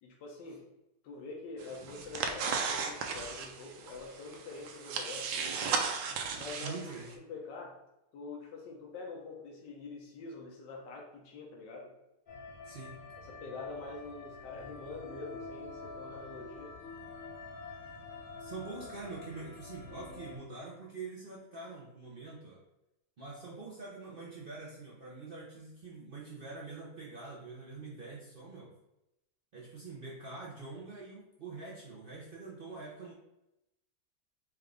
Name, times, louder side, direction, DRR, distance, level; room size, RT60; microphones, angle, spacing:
voice 1, 0.0-0.7 1.0-6.0 6.4-6.9 7.3-7.8 8.1-11.9 13.2-16.8, left 3 dB, 85° left, -1 dB, 1.4 m, -45 dB
sound 1, 1.6-7.1, right 5 dB, 85° right, 1.3 m, -36 dB
voice 2, 6.6-7.1 12.6-13.0 18.4-22.6 23.2-28.7 29.5-33.1, right 3 dB, 60° right, -5 dB, 0.5 m, -45 dB
sound 2, 12.3-20.4, left 3 dB, 45° left, 0.7 m, -47 dB
4.6 x 2.5 x 3.3 m, 0.90 s
omnidirectional pair, 1.9 m